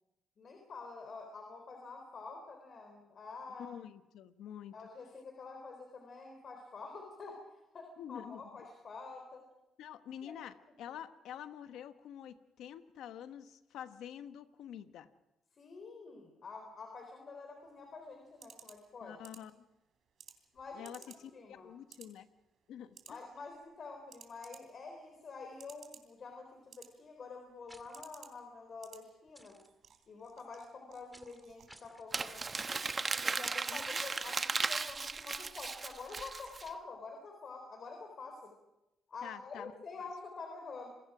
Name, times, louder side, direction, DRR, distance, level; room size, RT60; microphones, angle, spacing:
voice 1, 0.4-3.7 4.7-7.4 7.7-9.4 10.2-10.4 10.9-11.0 15.6-19.2 20.5-20.9 21.3-21.7 23.1-29.6 30.1-32.8 33.2-38.5 39.1-40.9, left 4 dB, 50° left, 3 dB, 3.9 m, -48 dB
voice 2, 3.5-4.8 8.0-8.6 9.8-15.1 19.0-19.6 20.7-22.3 22.7-23.2 33.7-34.0 39.2-39.8, left 9 dB, 80° left, 10 dB, 1.2 m, -48 dB
sound 1, 17.6-36.9, right 8 dB, 65° right, 3.2 m, -60 dB
sound 2, 27.7-28.0 29.3-29.7 31.1-31.4 31.7-32.1 32.5-32.8, right 1 dB, 5° right, 2.2 m, -58 dB
Crumpling crinkling, 32.1-36.7, right 4 dB, 30° right, 1.1 m, -36 dB
27.5 x 21.0 x 5.0 m, 0.94 s
cardioid pair, 90°, 0 cm